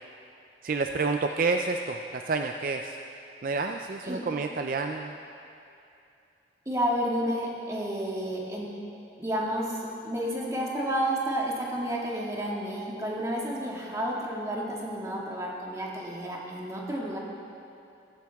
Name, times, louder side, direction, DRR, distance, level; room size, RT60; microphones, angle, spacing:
voice 1, 0.6-3.0 3.4-5.1, right 4 dB, 50° right, 4 dB, 0.4 m, -29 dB
voice 2, 6.7-8.7 9.2-17.2, equal, 20° right, -4 dB, 2.0 m, -31 dB
15.5 x 15.5 x 3.5 m, 2.7 s
head